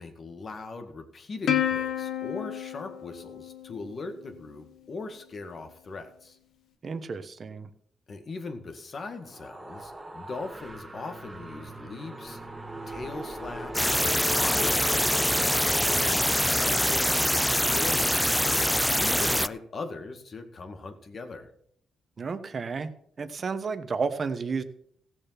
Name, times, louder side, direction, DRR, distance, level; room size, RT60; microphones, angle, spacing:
voice 1, 0.0-6.4 8.1-12.4 12.9-15.4 15.8-17.1 17.5-21.5, left 3 dB, 45° left, 6 dB, 2.0 m, -40 dB
Plucked string instrument, 1.5-4.2, left 10 dB, 75° left, 1.4 m, -30 dB
voice 2, 6.8-7.7 22.2-22.9 23.2-24.6, right 5 dB, 40° right, 11 dB, 1.2 m, -31 dB
sound 1, 9.1-17.4, right 1 dB, 15° right, 1.6 m, -40 dB
sound 2, 13.7-19.5, equal, 5° left, 0.4 m, -24 dB
16.0 x 6.9 x 5.9 m, 0.65 s
cardioid pair, 90°, 0 cm